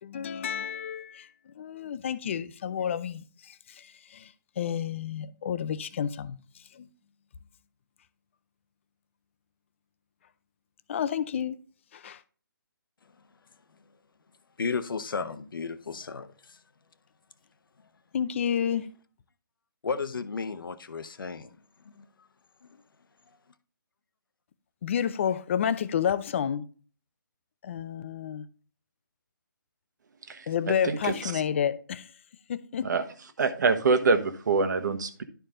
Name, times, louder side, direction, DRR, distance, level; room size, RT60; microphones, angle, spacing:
voice 1, 0.0-6.4 6.7-6.9 10.9-11.6 11.9-12.2 18.1-18.9 24.8-26.7 27.6-28.5 30.5-32.1 32.5-32.9, left 8 dB, 35° left, 0.5 m, -30 dB
voice 2, 14.6-16.6 19.8-21.6 21.9-22.0 22.6-22.8, left 5 dB, 70° left, 0.9 m, -34 dB
voice 3, 30.3-31.4 32.8-33.0 33.4-35.2, right 4 dB, 55° right, 1.2 m, -26 dB
11.5 x 4.7 x 3.8 m
hypercardioid pair, 155°, 12 cm